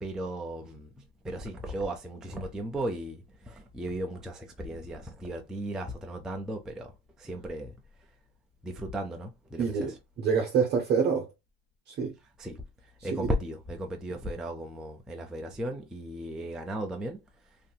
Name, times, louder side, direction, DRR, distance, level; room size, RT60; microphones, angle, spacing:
voice 1, 0.0-6.9 7.2-7.7 8.6-9.9 12.4-12.6 13.0-17.2, right 1 dB, ahead, 0.3 m, -36 dB
voice 2, 9.6-11.3 11.9-12.1 13.0-13.3, right 6 dB, 35° right, 0.7 m, -27 dB
2.7 x 2.6 x 2.2 m
hypercardioid pair, 105°, 30 cm